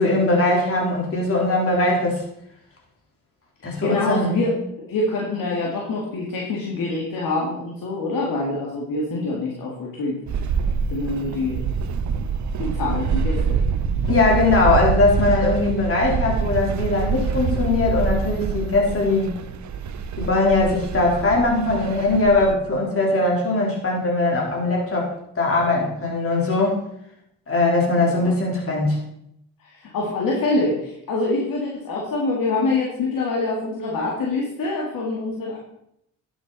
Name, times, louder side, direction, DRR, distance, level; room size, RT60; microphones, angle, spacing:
voice 1, 0.0-2.2 3.6-4.4 14.1-19.3 20.2-26.8 27.5-29.0, left 2 dB, 40° left, -2 dB, 3.8 m, -20 dB
voice 2, 3.8-10.2 10.9-11.6 12.6-13.6 28.2-28.3 29.6-35.6, left 2 dB, 70° left, -3 dB, 2.1 m, -25 dB
sound 1, 10.3-22.5, right 6 dB, 55° right, 0.8 m, -25 dB
11.0 x 7.4 x 4.1 m, 0.76 s
supercardioid pair, 55°, 35 cm